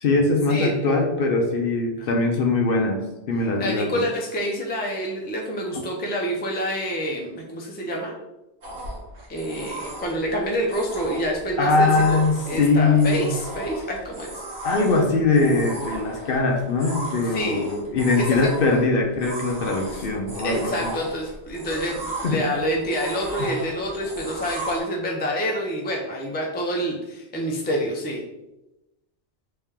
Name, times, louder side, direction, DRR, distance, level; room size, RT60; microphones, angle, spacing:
voice 1, 0.0-3.0 3.3-4.0 11.6-13.3 14.6-20.9 22.2-22.4 23.4-23.5, left 3 dB, 60° left, 1 dB, 0.7 m, -21 dB
voice 2, 3.6-8.1 9.3-14.4 17.3-17.6 18.2-18.5 20.4-28.2, equal, 15° left, -1 dB, 0.4 m, -27 dB
sound 1, 8.6-24.8, right 1 dB, 70° right, 1.3 m, -36 dB
3.3 x 2.8 x 3.5 m, 0.95 s
omnidirectional pair, 1.2 m